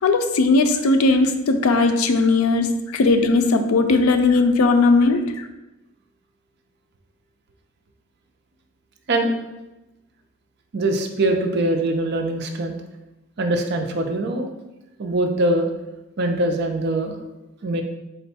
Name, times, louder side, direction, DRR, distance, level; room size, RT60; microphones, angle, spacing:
voice 1, 0.0-2.7 2.9-5.4, left 3 dB, 90° left, 8 dB, 0.4 m, -18 dB
voice 2, 10.7-12.8 13.4-14.5 15.0-15.7 16.2-17.2 17.6-17.8, right 1 dB, 50° right, 4 dB, 0.4 m, -22 dB
4.2 x 2.2 x 4.1 m, 0.98 s
head